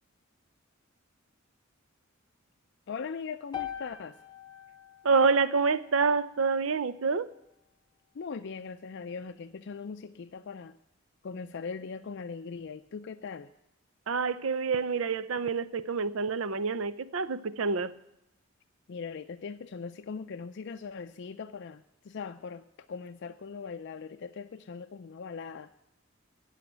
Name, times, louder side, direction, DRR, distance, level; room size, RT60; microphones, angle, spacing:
voice 1, 2.9-4.2 8.1-10.8 11.2-13.5 18.9-25.7, left 5 dB, 60° left, 8 dB, 0.4 m, -40 dB
sound 1, 3.5-7.7, left 10 dB, 20° left, 1.1 m, -44 dB
voice 2, 5.0-7.3 14.1-17.9, right 4 dB, 80° right, 16 dB, 0.6 m, -27 dB
15.5 x 5.8 x 9.9 m, 0.86 s
head